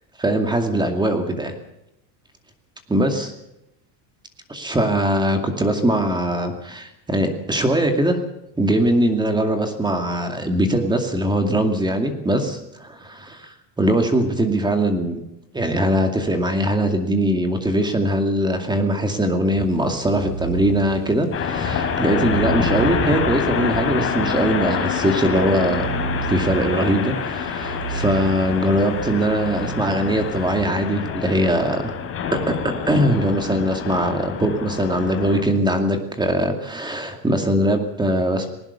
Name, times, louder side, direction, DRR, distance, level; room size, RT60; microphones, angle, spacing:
voice 1, 0.2-1.5 2.9-3.3 4.5-8.2 8.6-15.2 15.5-25.9 26.3-31.9 32.3-38.5, right 1 dB, 10° right, 5 dB, 2.3 m, -21 dB
sound 1, 19.6-31.4, right 6 dB, 45° right, 5.8 m, -33 dB
sound 2, 21.3-35.4, left 7 dB, 30° left, 4.8 m, -26 dB
20.0 x 19.0 x 7.1 m, 0.84 s
supercardioid pair, 150°, 46 cm